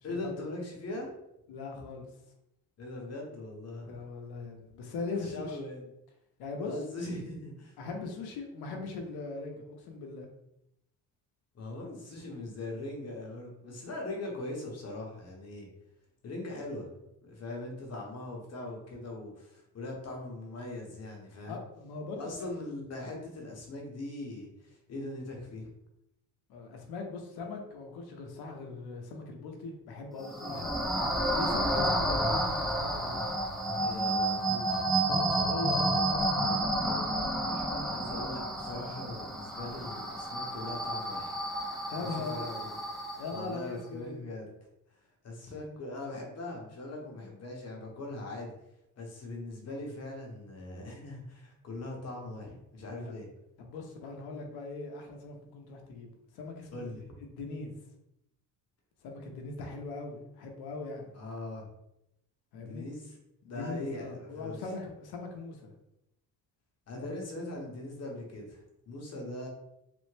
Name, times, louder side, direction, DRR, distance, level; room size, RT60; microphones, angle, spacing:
voice 1, 0.0-1.1 2.8-3.9 5.2-5.9 6.6-7.8 11.5-15.7 16.2-16.9 17.2-21.6 22.1-25.7 33.8-34.9 37.9-41.4 41.9-42.7 43.3-44.5 45.2-48.5 49.0-53.3 56.7-57.0 61.1-61.7 62.5-63.1 63.5-64.6 66.9-69.5, left 2 dB, 40° left, 0 dB, 0.9 m, -40 dB
voice 2, 1.5-2.1 3.9-5.6 6.4-6.8 7.8-10.3 21.5-22.5 26.5-30.7 31.3-33.2 35.1-38.0 41.9-42.4 43.2-44.2 52.9-53.1 53.6-56.9 57.2-57.8 59.0-61.1 62.5-62.9 63.4-65.7 66.9-67.1, left 3 dB, 80° left, 2 dB, 0.8 m, -40 dB
sound 1, 30.2-43.6, right 1 dB, ahead, 0.4 m, -31 dB
3.4 x 2.0 x 3.2 m, 0.83 s
cardioid pair, 115°, 37 cm